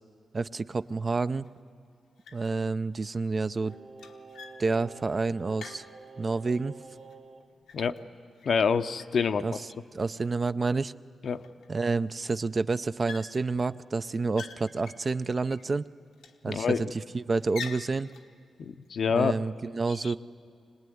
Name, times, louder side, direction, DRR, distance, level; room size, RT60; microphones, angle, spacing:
voice 1, 0.3-1.5 2.3-3.7 4.6-5.8 6.2-6.7 9.4-9.5 9.9-10.9 11.7-15.8 16.4-16.7 17.1-18.1 19.1-20.2, right 3 dB, 45° right, 13 dB, 0.5 m, -29 dB
sound 1, 0.9-1.0 1.4-1.9 2.2-2.7 2.9-6.6 7.0-8.7 9.0-9.9 10.5-10.6 10.9-11.0 11.3-12.1 12.3-12.6 13.1-13.7 14.1-15.7 16.1-16.9 17.4-18.3, left 6 dB, 90° left, 1.2 m, -47 dB
Singing, 3.6-7.5 7.8-7.9, right 4 dB, 80° right, 2.9 m, -49 dB
voice 2, 8.4-9.5 11.2-11.4 16.5-16.9 18.6-19.3 19.9-20.1, left 6 dB, 70° left, 9 dB, 0.7 m, -27 dB
24.5 x 18.5 x 9.4 m, 2.5 s
cardioid pair, 55°, 0 cm